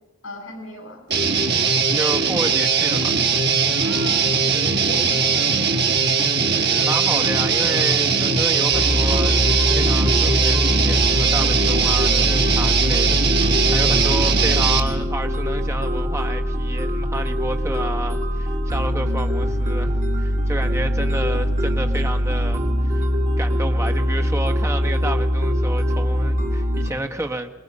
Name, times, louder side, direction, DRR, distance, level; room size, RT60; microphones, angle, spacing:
voice 1, 0.2-1.0 3.8-5.5, equal, 80° left, 1 dB, 7.9 m, -37 dB
Guitar, 1.1-14.8, right 5 dB, 55° right, 1.7 m, -20 dB
voice 2, 1.9-3.2 6.5-9.4 9.7-23.0 23.4-27.5, right 1 dB, 15° right, 4 dB, 1.3 m, -30 dB
sound 1, 8.7-26.9, equal, 35° right, 2.7 m, -22 dB
25.5 x 21.0 x 5.4 m, 1.2 s
head